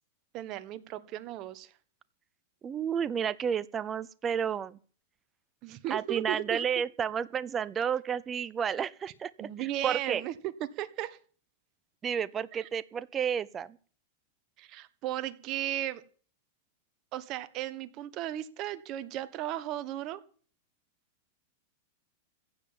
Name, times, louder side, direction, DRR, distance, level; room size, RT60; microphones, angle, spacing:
voice 1, 0.3-1.7 5.6-6.7 9.4-10.3 10.8-11.2 14.6-16.0 17.1-20.2, right 13 dB, 40° right, 12 dB, 1.4 m, -35 dB
voice 2, 2.6-4.8 5.9-10.2 12.0-13.8, right 7 dB, 20° right, 16 dB, 0.7 m, -31 dB
15.5 x 7.7 x 8.9 m, 0.43 s
hypercardioid pair, 135°, 0 cm